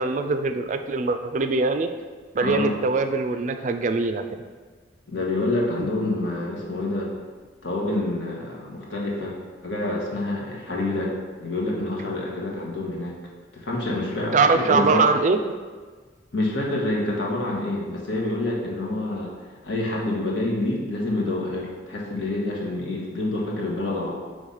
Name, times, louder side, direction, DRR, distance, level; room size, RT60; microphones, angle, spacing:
voice 1, 0.0-1.9 2.3-4.2 5.8-5.9 14.3-15.6, right 4 dB, 40° right, 8 dB, 0.3 m, -22 dB
voice 2, 2.4-2.7 5.1-7.1 7.6-9.4 9.6-11.1 11.4-13.1 13.5-15.0 16.3-19.3 19.6-24.1, left 2 dB, 85° left, -3 dB, 1.4 m, -27 dB
4.9 x 3.6 x 5.5 m, 1.4 s
head